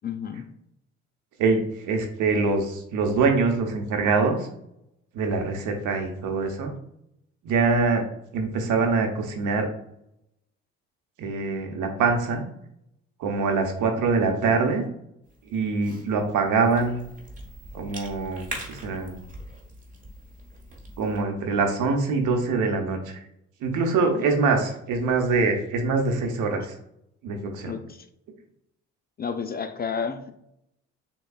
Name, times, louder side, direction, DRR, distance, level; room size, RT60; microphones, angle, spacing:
voice 1, 0.0-0.5 24.0-24.3 27.6-28.1 29.2-30.3, left 6 dB, 30° left, 9 dB, 0.4 m, -31 dB
voice 2, 1.4-4.4 5.1-6.7 7.4-8.0 8.3-9.7 11.2-12.4 13.2-14.9 15.5-17.0 17.7-19.2 21.0-23.2 23.6-26.7 27.2-27.7, right 4 dB, 65° right, 4 dB, 0.9 m, -24 dB
Cough / Chewing mastication, 15.3-21.2, right 1 dB, 25° right, 1.2 m, -42 dB
6.5 x 2.3 x 2.3 m, 0.77 s
hypercardioid pair, 60°, 33 cm